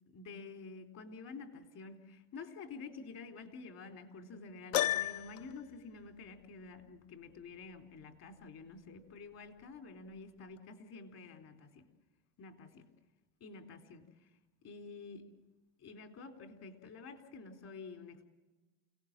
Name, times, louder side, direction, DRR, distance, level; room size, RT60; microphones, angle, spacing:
voice 1, 0.1-11.9 12.4-12.9 13.4-14.3 14.6-15.3 15.8-18.3, left 4 dB, 40° left, 5 dB, 3.9 m, -49 dB
Piano, 4.7-5.6, left 13 dB, 80° left, 0.8 m, -32 dB
29.5 x 18.0 x 7.5 m, 1.2 s
supercardioid pair, 120°, 38 cm